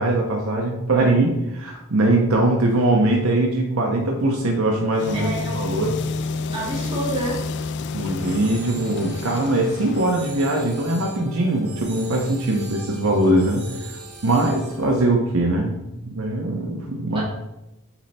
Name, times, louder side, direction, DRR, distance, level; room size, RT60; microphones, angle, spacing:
voice 1, 0.0-6.0 7.9-14.0 14.2-17.2, right 2 dB, 70° right, 1 dB, 0.9 m, -21 dB
sound 1, 4.9-10.3, left 4 dB, 55° left, 0.3 m, -30 dB
voice 2, 5.1-5.8 6.5-7.4 17.1-17.2, right 1 dB, 25° right, -6 dB, 2.1 m, -28 dB
sound 2, 8.2-15.1, right 2 dB, 85° right, 1.7 m, -39 dB
7.1 x 3.3 x 4.2 m, 0.92 s
head